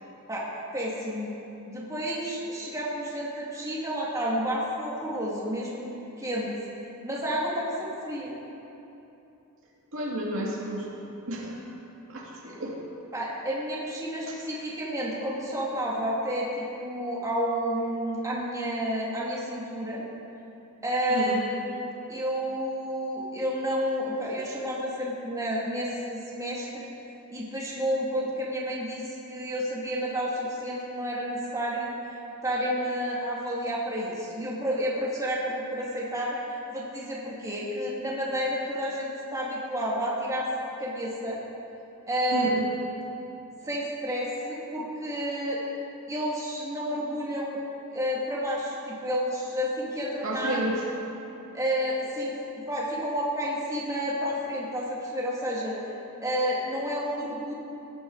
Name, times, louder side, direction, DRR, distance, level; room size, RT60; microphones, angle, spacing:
voice 1, 0.7-1.3 1.7-6.5 7.0-8.3 13.1-20.0 20.8-21.4 21.7-26.9 27.3-32.0 32.4-36.4 36.7-40.5 40.8-41.4 42.1-42.6 43.6-45.6 46.1-47.6 47.9-50.6 51.5-52.4 52.7-55.8 56.2-57.5, equal, 15° right, -6 dB, 2.3 m, -30 dB
voice 2, 9.9-10.9 11.3-11.6 12.1-12.8 14.3-14.4 21.1-21.4 42.3-42.7 50.2-50.8, right 1 dB, 65° right, -3 dB, 2.4 m, -31 dB
18.0 x 11.5 x 4.7 m, 2.9 s
head